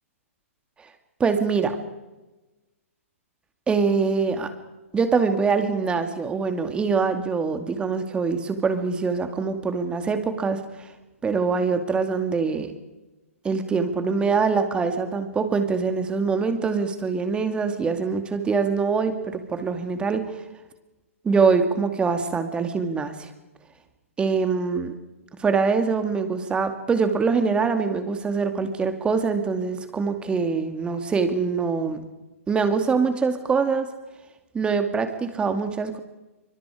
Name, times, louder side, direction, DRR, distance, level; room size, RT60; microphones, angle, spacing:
voice 1, 1.2-1.8 3.7-4.5 4.9-10.9 11.2-12.7 13.4-20.2 21.2-23.3 24.2-24.9 25.4-32.0 32.5-33.9 34.5-36.0, right 5 dB, 15° right, 8 dB, 2.4 m, -24 dB
26.5 x 25.0 x 5.0 m, 1.1 s
figure-of-eight pair, 120°, 8 cm